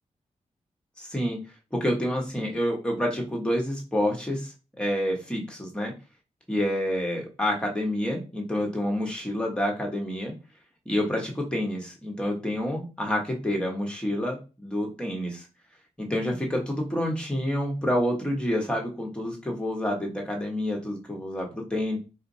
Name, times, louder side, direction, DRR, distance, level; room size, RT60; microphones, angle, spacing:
voice 1, 1.0-1.4 1.7-4.5 4.8-5.9 6.5-10.3 10.8-15.4 16.0-22.0, equal, 10° left, 0 dB, 1.0 m, -28 dB
3.9 x 2.5 x 2.5 m, 0.30 s
wide cardioid pair, 110°, 13 cm